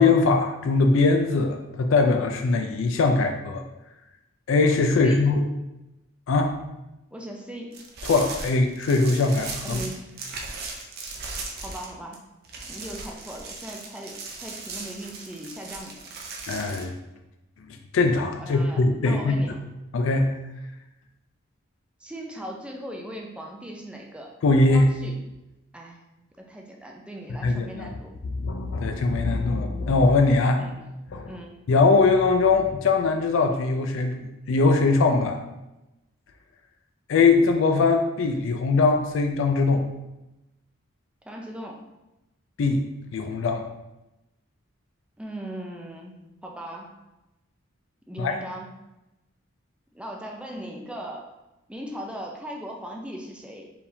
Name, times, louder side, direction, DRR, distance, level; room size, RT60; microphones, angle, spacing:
voice 1, 0.0-3.6 4.5-5.5 6.3-6.5 8.1-9.8 16.5-16.9 17.9-19.4 19.9-20.3 24.4-24.8 27.4-27.9 28.4-30.6 31.1-31.3 31.7-34.1 34.5-35.4 37.1-39.9 42.6-42.8 43.1-43.7 48.2-48.4, left 3 dB, 65° left, 5 dB, 0.4 m, -21 dB
voice 2, 7.1-7.8 9.6-10.1 11.6-12.3 12.7-16.0 18.4-19.6 22.0-24.3 24.7-25.2 25.7-26.0 26.4-28.1 30.6-30.9 31.3-31.6 41.2-41.8 45.2-46.9 48.1-48.7 49.9-51.3 51.7-53.7, right 1 dB, 5° right, 0 dB, 0.4 m, -38 dB
sound 1, 7.7-12.2 12.4-16.8, right 3 dB, 50° right, 0.6 m, -37 dB
4.6 x 3.4 x 2.7 m, 0.97 s
head